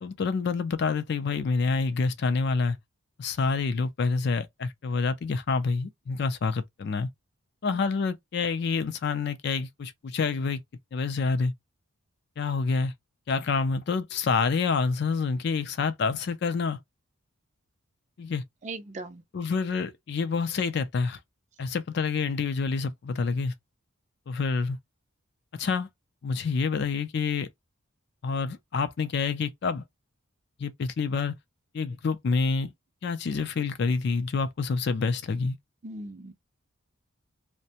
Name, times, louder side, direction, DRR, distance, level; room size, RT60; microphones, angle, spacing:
voice 1, 0.0-2.8 3.2-7.1 7.6-10.6 10.9-11.5 12.4-12.9 13.3-16.8 18.2-18.4 19.3-21.2 21.6-23.5 24.3-24.8 25.6-25.9 26.2-27.5 28.2-29.8 30.6-31.4 31.7-32.7 33.0-35.6, left 4 dB, 50° left, 0.4 m, -27 dB
voice 2, 18.6-19.2 35.8-36.3, right 2 dB, 35° right, 0.4 m, -39 dB
2.5 x 2.1 x 2.8 m
head